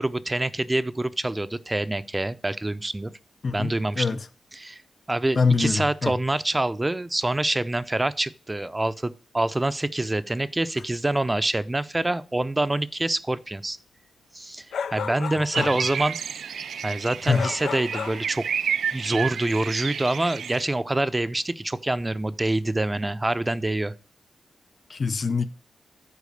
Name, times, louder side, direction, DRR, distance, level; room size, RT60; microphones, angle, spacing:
voice 1, 0.0-3.1 3.5-4.2 4.5-4.8 5.1-13.8 14.3-14.7 14.9-16.2 16.8-18.4 18.9-23.9, right 2 dB, 15° right, 0.5 m, -26 dB
voice 2, 3.4-4.2 5.4-6.1 15.6-15.7 17.3-17.4 24.9-25.5, left 4 dB, 40° left, 0.6 m, -24 dB
sound 1, 14.7-15.9 17.3-18.3, left 7 dB, 90° left, 0.4 m, -32 dB
sound 2, 15.5-20.6, right 7 dB, 75° right, 0.3 m, -31 dB
8.3 x 4.7 x 6.5 m
wide cardioid pair, 105°, 0 cm